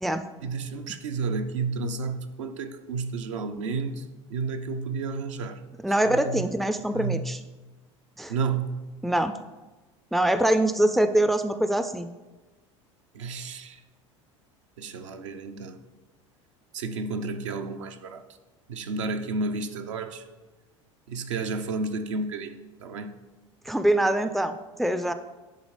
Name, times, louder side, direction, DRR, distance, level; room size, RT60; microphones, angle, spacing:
voice 1, 0.4-4.0 4.3-5.6 6.1-6.5 6.9-7.2 8.3-8.8 13.1-13.8 14.8-15.8 16.7-18.2 18.7-20.2 21.1-22.5 22.8-23.2, right 4 dB, 75° right, 0.6 m, -31 dB
voice 2, 5.8-7.4 8.2-8.3 9.0-9.3 10.1-12.1 23.7-25.1, right 1 dB, ahead, 0.3 m, -24 dB
10.5 x 3.7 x 3.2 m
hypercardioid pair, 75°, 16 cm